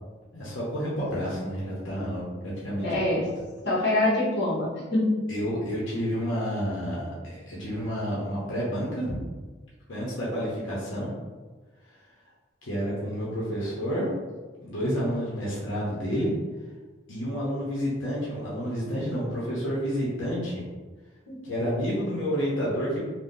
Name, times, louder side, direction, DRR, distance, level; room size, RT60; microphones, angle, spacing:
voice 1, 0.3-3.2 5.3-9.2 9.9-11.1 12.6-14.1 14.6-16.3 17.1-20.6 21.4-23.0, equal, 90° left, -6 dB, 0.9 m, -30 dB
voice 2, 2.8-3.3 3.6-5.1 21.3-21.4, left 1 dB, 60° left, -7 dB, 1.1 m, -24 dB
2.7 x 2.3 x 3.7 m, 1.3 s
head